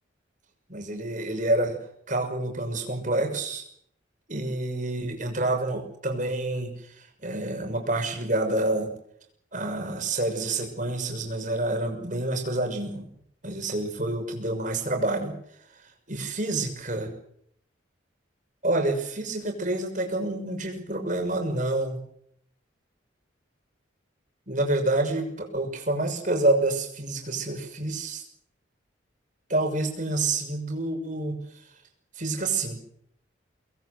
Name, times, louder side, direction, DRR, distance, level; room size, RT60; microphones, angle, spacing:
voice 1, 0.7-1.8 2.1-3.6 4.3-8.9 9.5-13.1 13.4-15.3 16.1-17.1 18.6-22.0 24.5-28.2 29.5-31.4 32.2-32.8, right 2 dB, 40° right, 4 dB, 6.2 m, -28 dB
25.0 x 20.5 x 8.1 m, 0.70 s
head